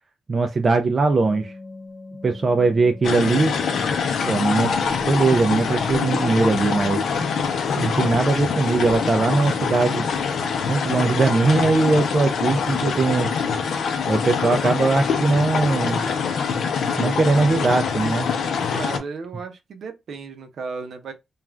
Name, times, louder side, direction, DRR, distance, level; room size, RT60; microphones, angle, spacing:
voice 1, 0.3-1.5 2.2-3.6 4.3-4.7 5.0-7.0 7.8-10.1 10.7-13.3 14.1-16.0 17.0-18.3, right 3 dB, 35° right, 0.3 m, -20 dB
sound 1, 1.2-13.3 15.2-15.3 15.6-15.8 16.2-16.3 16.6-16.9, left 2 dB, 20° left, 0.6 m, -44 dB
sound 2, 3.0-19.0, left 6 dB, 70° left, 0.6 m, -24 dB
voice 2, 18.7-21.1, right 4 dB, 60° right, 0.7 m, -34 dB
2.4 x 2.3 x 3.1 m
cardioid pair, 130°, 0 cm